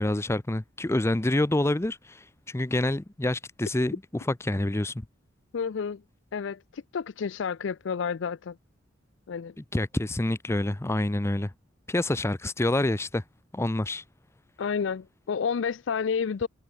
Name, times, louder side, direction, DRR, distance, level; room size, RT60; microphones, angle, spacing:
voice 1, 0.0-3.9 4.4-5.0 9.7-11.5 11.9-13.2 13.5-14.0, left 1 dB, 15° left, 0.6 m, -27 dB
voice 2, 5.5-6.0 6.3-8.6 9.3-9.5 14.6-16.5, left 6 dB, 65° left, 0.4 m, -30 dB
head